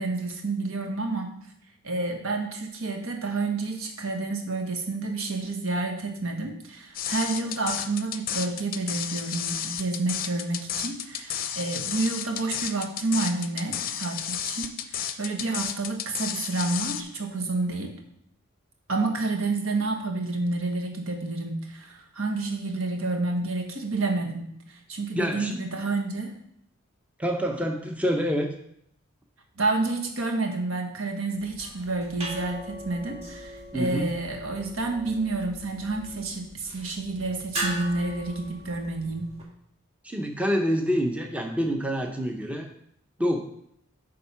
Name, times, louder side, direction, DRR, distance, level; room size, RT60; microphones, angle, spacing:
voice 1, 0.0-1.3 1.8-17.9 18.9-26.3 29.6-39.3, right 3 dB, 85° right, 3 dB, 1.3 m, -29 dB
sound 1, 6.9-17.0, left 9 dB, 45° left, 0.5 m, -32 dB
voice 2, 25.2-25.6 27.2-28.5 33.7-34.1 40.0-42.7 43.2-43.4, equal, 5° right, 3 dB, 0.7 m, -27 dB
sound 2, 31.4-39.4, right 1 dB, 30° right, 1.7 m, -39 dB
9.0 x 3.6 x 5.6 m, 0.71 s
head